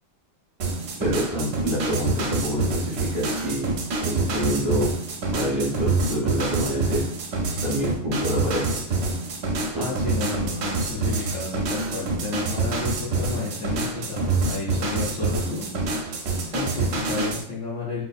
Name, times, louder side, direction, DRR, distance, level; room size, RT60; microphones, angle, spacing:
sound 1, 0.6-17.4, right 3 dB, 70° right, 1.0 m, -26 dB
voice 1, 1.0-3.7 4.0-4.9 5.3-7.0 7.6-8.8 9.7-9.9, equal, 20° right, -7 dB, 0.5 m, -27 dB
voice 2, 9.8-15.6 16.5-18.0, left 3 dB, 70° left, -7 dB, 0.7 m, -32 dB
3.6 x 2.5 x 2.3 m, 0.62 s
omnidirectional pair, 2.3 m